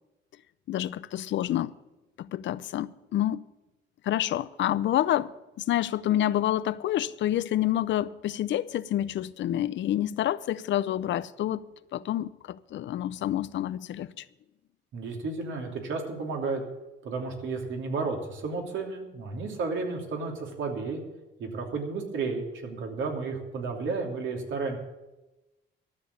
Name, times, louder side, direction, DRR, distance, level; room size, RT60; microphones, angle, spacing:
voice 1, 0.7-1.7 2.2-3.4 4.0-11.6 11.9-14.2, left 12 dB, 70° left, 0.6 m, -28 dB
voice 2, 14.9-16.6 17.0-21.0 21.4-24.8, right 4 dB, 75° right, 3.0 m, -32 dB
13.0 x 7.0 x 9.6 m
cardioid pair, 90°, 20 cm